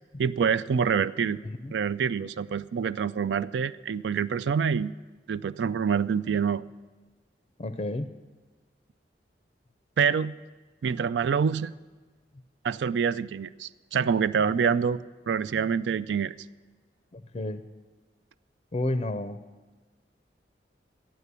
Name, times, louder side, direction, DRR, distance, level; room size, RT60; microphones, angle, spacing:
voice 1, 0.2-1.4 1.7-4.9 5.3-6.6 10.0-10.3 10.8-11.7 12.6-16.3, right 6 dB, 80° right, 14 dB, 0.3 m, -26 dB
voice 2, 7.6-8.1 17.1-17.6 18.7-19.4, left 1 dB, 35° left, 11 dB, 0.5 m, -31 dB
12.5 x 9.1 x 8.2 m, 1.3 s
head